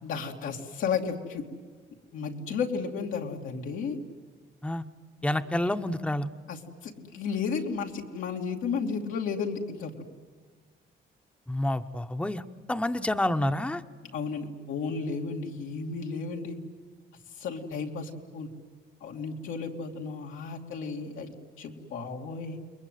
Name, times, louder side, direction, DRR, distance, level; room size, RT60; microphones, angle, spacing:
voice 1, 0.0-1.4 2.1-4.0 5.3-5.4 6.5-9.9 14.1-16.6 17.4-18.5 19.0-22.6, left 5 dB, 85° left, 1 dB, 2.7 m, -33 dB
voice 2, 5.2-6.3 11.5-12.4 12.7-13.8, left 1 dB, 5° left, 8 dB, 1.0 m, -28 dB
29.0 x 22.0 x 9.3 m, 1.5 s
cardioid pair, 90°, 20 cm